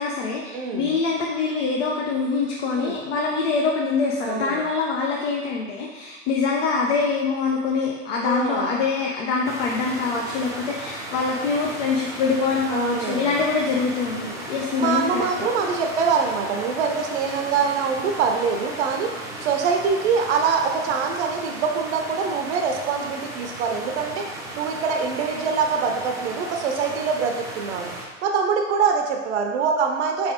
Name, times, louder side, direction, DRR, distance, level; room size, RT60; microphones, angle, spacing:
voice 1, 0.0-15.3, left 4 dB, 65° left, -2 dB, 0.8 m, -24 dB
voice 2, 0.5-1.0 2.7-3.0 4.2-4.6 8.2-8.8 12.7-13.4 14.1-14.3 14.8-19.1 19.4-27.9 28.2-30.3, right 5 dB, 60° right, 3 dB, 0.6 m, -24 dB
sound 1, 9.4-28.1, right 1 dB, 10° right, 0.5 m, -36 dB
4.7 x 3.3 x 2.9 m, 1.2 s
hypercardioid pair, 115°, 39 cm